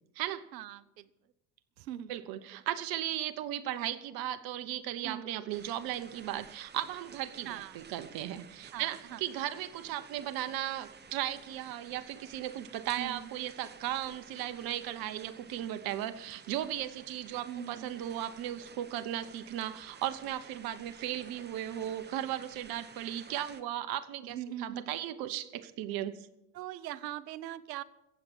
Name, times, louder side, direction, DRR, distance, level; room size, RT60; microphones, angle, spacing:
voice 1, 0.5-1.1 1.8-2.1 5.0-5.5 7.4-7.8 8.7-9.2 13.0-13.3 17.4-18.0 24.2-25.0 26.5-27.8, right 11 dB, 75° right, 18 dB, 0.8 m, -41 dB
voice 2, 2.1-26.3, right 12 dB, 45° right, 11 dB, 0.9 m, -36 dB
sound 1, 5.5-23.6, right 6 dB, 20° right, 1.0 m, -53 dB
15.5 x 8.3 x 7.2 m, 0.89 s
hypercardioid pair, 75°, 50 cm